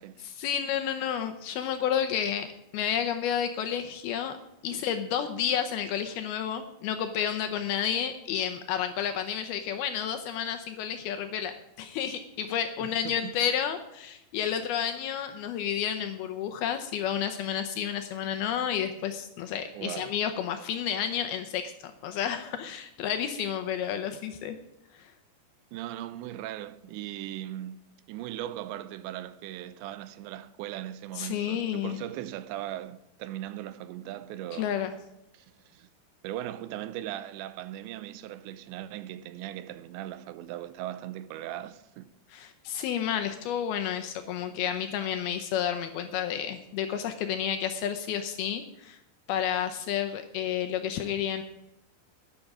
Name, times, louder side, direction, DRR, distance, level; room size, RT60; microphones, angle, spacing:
voice 1, 0.2-2.5 2.7-4.3 4.6-11.5 11.8-21.7 22.0-24.6 24.9-25.1 31.2-32.0 34.5-34.9 42.3-49.0 49.3-51.4, left 9 dB, 75° left, 2.4 m, -31 dB
voice 2, 12.8-13.3 19.7-20.1 25.7-27.8 28.1-34.7 35.3-35.9 36.2-42.1, right 13 dB, 85° right, 2.9 m, -39 dB
11.5 x 11.0 x 6.1 m
omnidirectional pair, 5.1 m